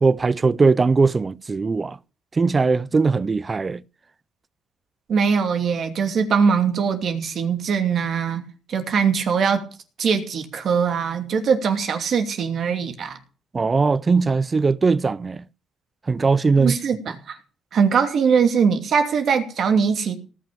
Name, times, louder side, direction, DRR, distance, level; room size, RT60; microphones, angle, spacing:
voice 1, 0.0-2.0 2.3-3.8 13.5-15.4 16.1-16.8, right 4 dB, 30° right, 0.5 m, -19 dB
voice 2, 5.1-9.7 10.0-13.2 16.6-17.4 17.7-20.2, right 6 dB, 60° right, 2.7 m, -21 dB
18.5 x 6.1 x 7.0 m
cardioid pair, 90°, 0 cm